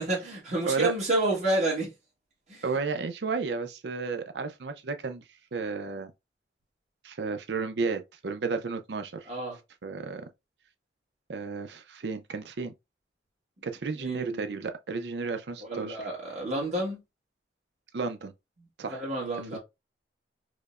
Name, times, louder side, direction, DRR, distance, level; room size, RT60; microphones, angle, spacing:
voice 1, 0.0-1.9 2.5-2.6 9.3-9.5 14.0-14.5 15.7-17.0 18.9-19.6, right 2 dB, 40° right, 1.3 m, -29 dB
voice 2, 2.6-5.2 5.5-6.1 7.0-9.3 9.8-10.3 11.3-12.7 13.6-16.1 17.9-18.3 18.8-19.0 19.5-19.6, right 4 dB, 70° right, 0.5 m, -32 dB
4.8 x 2.1 x 2.4 m
head